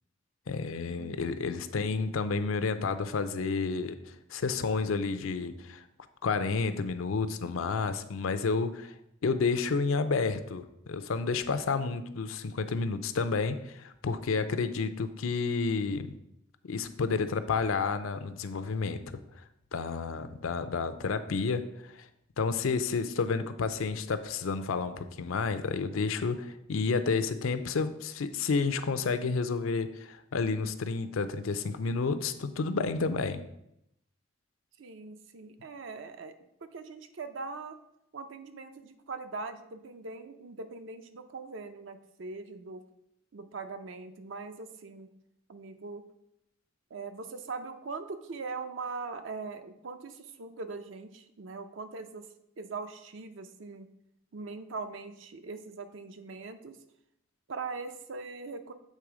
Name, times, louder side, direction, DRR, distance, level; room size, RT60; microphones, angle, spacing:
voice 1, 0.5-4.0 4.3-5.8 6.2-8.9 9.2-16.2 16.7-19.0 19.7-22.1 22.4-33.4, left 4 dB, 85° left, 10 dB, 0.5 m, -30 dB
voice 2, 1.0-1.7 34.8-36.3 36.6-37.8 38.1-42.8 43.3-45.1 45.5-46.0 46.9-52.3 52.6-53.9 54.3-56.8 57.5-58.7, right 4 dB, 65° right, 9 dB, 0.6 m, -41 dB
7.6 x 3.4 x 4.8 m, 0.81 s
head